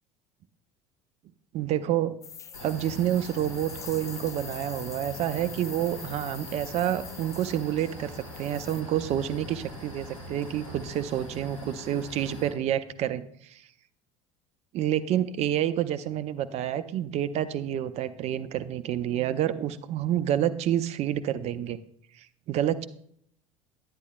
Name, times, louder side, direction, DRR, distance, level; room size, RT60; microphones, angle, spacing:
voice 1, 1.5-2.1 2.6-13.2 13.5-13.6 14.7-21.8 22.5-22.9, right 11 dB, 40° right, 13 dB, 0.5 m, -28 dB
Shower inside, 2.2-8.8, left 6 dB, 20° left, 0.4 m, -44 dB
sound 1, 2.5-12.5, equal, 80° left, 2.8 m, -43 dB
9.7 x 9.6 x 2.3 m, 0.67 s
figure-of-eight pair, 65°, 17 cm